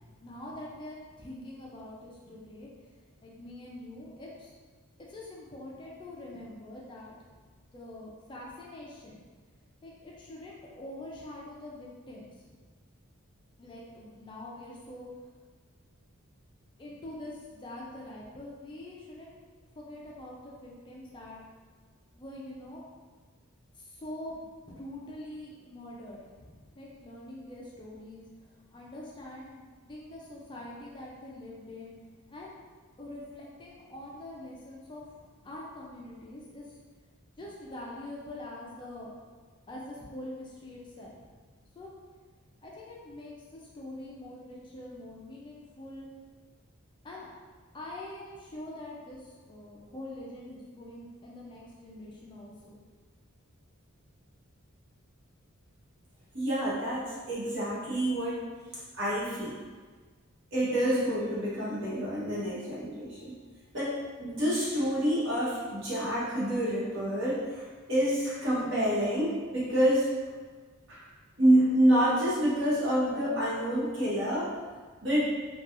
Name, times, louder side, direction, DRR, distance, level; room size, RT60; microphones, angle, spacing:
voice 1, 0.2-2.7 3.2-4.5 5.0-7.4 7.7-9.2 9.8-12.7 13.6-15.1 16.8-19.4 19.8-21.4 22.1-22.8 23.7-31.9 32.3-32.6 33.0-36.8 37.4-39.1 39.7-41.3 41.8-41.9 42.6-46.1 47.0-47.3 47.7-52.7, left 1 dB, 20° left, -4 dB, 0.3 m, -44 dB
voice 2, 56.3-58.4 58.9-59.6 60.5-63.3 63.7-67.6 67.9-70.1 70.9-71.0 71.4-74.5 75.0-75.2, equal, 60° right, -9 dB, 1.0 m, -27 dB
2.8 x 2.2 x 2.4 m, 1.4 s
head